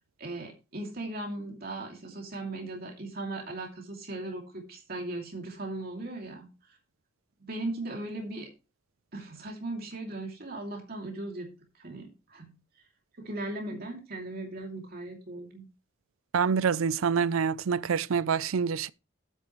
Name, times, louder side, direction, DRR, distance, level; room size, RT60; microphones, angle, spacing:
voice 1, 0.2-6.8 7.4-8.5 9.1-11.5 11.7-12.5 13.2-15.7, right 2 dB, 50° right, 2.6 m, -38 dB
voice 2, 16.3-18.9, right 6 dB, 80° right, 0.5 m, -26 dB
11.5 x 8.4 x 3.1 m
head